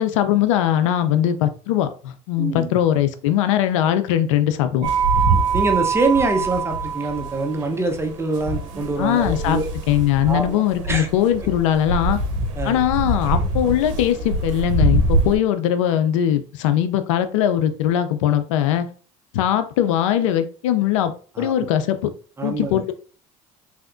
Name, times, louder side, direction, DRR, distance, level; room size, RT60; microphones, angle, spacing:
voice 1, 0.0-4.9 9.0-12.2 12.6-18.9 19.3-22.1 22.4-22.9, left 11 dB, 90° left, 10 dB, 0.4 m, -20 dB
voice 2, 2.4-2.8 5.5-9.7 10.3-11.1 12.6-12.8 21.4-21.7 22.4-22.8, right 3 dB, 15° right, 4 dB, 0.8 m, -24 dB
sound 1, 4.8-15.4, right 3 dB, 85° right, 0.7 m, -24 dB
3.4 x 2.7 x 2.5 m, 0.40 s
supercardioid pair, 80°, 16 cm